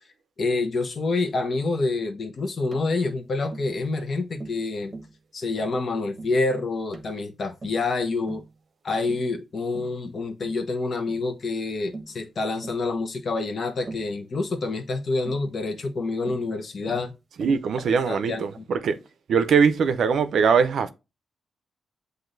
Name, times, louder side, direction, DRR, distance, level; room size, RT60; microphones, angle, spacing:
voice 1, 0.4-4.9 5.3-8.4 8.8-17.1 18.0-18.6, left 3 dB, 60° left, 0.9 m, -27 dB
Tap, 2.7-2.9 3.5-3.7 4.4-4.6 4.9-5.2 5.6-5.8 6.2-6.4 6.9-7.1 7.6-7.9 8.3-8.5 9.1-9.3 9.7-10.0 10.4-10.6 11.1-11.3 11.9-12.2 12.6-12.8 13.9-14.1 15.2-15.5 16.3-16.5 16.9-17.1 17.4-17.7, right 3 dB, 35° right, 0.9 m, -40 dB
voice 2, 17.4-19.0 19.3-20.9, right 6 dB, 75° right, 0.5 m, -21 dB
7.7 x 2.6 x 2.6 m
cardioid pair, 70°, 0 cm